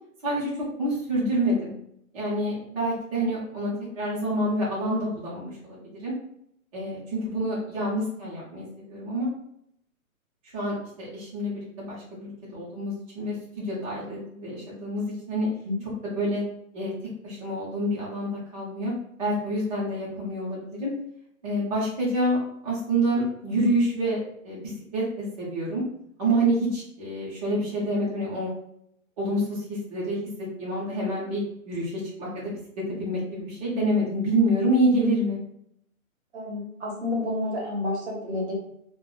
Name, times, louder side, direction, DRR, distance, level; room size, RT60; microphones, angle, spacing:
voice 1, 0.8-1.7 2.1-6.1 6.7-9.3 10.5-15.5 16.0-16.4 16.7-16.9 17.2-18.9 19.2-20.9 21.4-22.4 22.6-25.8 26.2-28.5 29.2-30.2 30.6-32.5 32.9-35.4, right 1 dB, 25° right, -8 dB, 0.8 m, -27 dB
voice 2, 36.3-38.5, left 2 dB, 50° right, -2 dB, 1.0 m, -30 dB
2.3 x 2.1 x 3.6 m, 0.73 s
hypercardioid pair, 165°, 42 cm